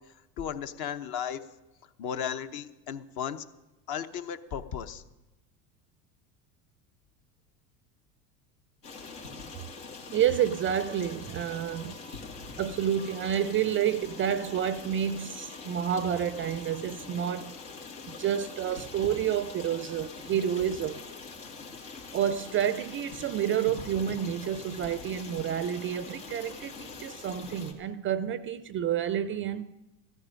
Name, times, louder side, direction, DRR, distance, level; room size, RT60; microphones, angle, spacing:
voice 1, 0.4-1.4 2.0-3.4 3.9-5.0, left 8 dB, 50° left, 1.0 m, -35 dB
Stream, 8.8-27.7, left 4 dB, 90° left, 2.4 m, -44 dB
voice 2, 9.3-9.7 10.1-12.2 12.6-17.6 18.1-21.0 22.1-29.7, right 9 dB, 30° right, 0.4 m, -29 dB
15.0 x 13.5 x 5.2 m
hypercardioid pair, 90°, 46 cm